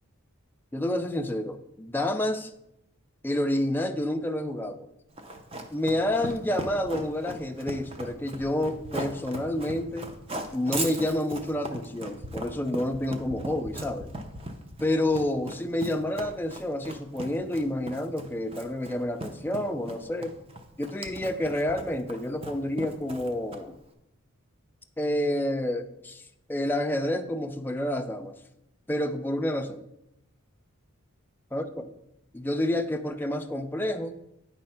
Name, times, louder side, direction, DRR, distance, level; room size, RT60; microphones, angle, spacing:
voice 1, 0.7-2.5 3.2-4.9 5.7-10.1 10.5-14.1 14.8-20.3 20.8-23.8 25.0-28.3 28.9-29.8 31.5-31.6 32.3-34.2, left 1 dB, 10° left, 5 dB, 0.4 m, -29 dB
Run, 5.2-23.8, right 1 dB, 25° right, 0.6 m, -38 dB
9.4 x 3.2 x 5.7 m, 0.84 s
head